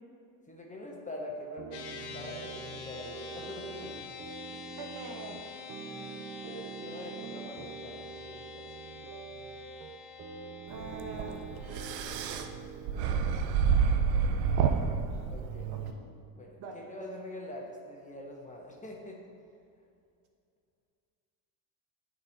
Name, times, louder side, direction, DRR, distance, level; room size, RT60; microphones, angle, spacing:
voice 1, 0.5-4.1 4.5-4.7 5.9-6.1 6.4-8.7 15.3-15.8 16.3-19.2, left 1 dB, 15° left, -1 dB, 1.2 m, -44 dB
sound 1, 1.6-13.4, right 7 dB, 30° right, 0.4 m, -45 dB
sound 2, 1.7-12.5, left 6 dB, 90° left, 1.0 m, -46 dB
voice 2, 4.8-5.5 10.7-11.4 14.7-15.3 15.7-16.1 16.6-16.8, right 4 dB, 50° right, 1 dB, 1.2 m, -44 dB
sound 3, 10.7-15.9, right 6 dB, 90° right, 0.7 m, -29 dB
9.5 x 4.2 x 4.0 m, 2.4 s
supercardioid pair, 90°, 48 cm